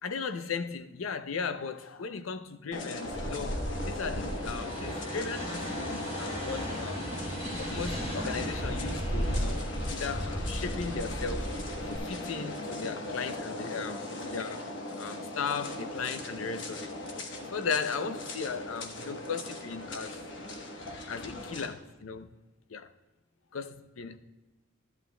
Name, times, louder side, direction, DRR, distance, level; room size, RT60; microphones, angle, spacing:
voice 1, 0.0-7.0 7.6-11.5 11.8-14.7 15.0-16.9 17.4-20.2 21.1-22.4 22.7-22.9 23.5-24.2, left 5 dB, 85° left, 0.6 m, -37 dB
sound 1, 2.7-21.7, left 1 dB, 65° left, 1.1 m, -39 dB
sound 2, 3.0-12.0, equal, 30° left, 2.8 m, -35 dB
13.0 x 11.0 x 2.2 m
head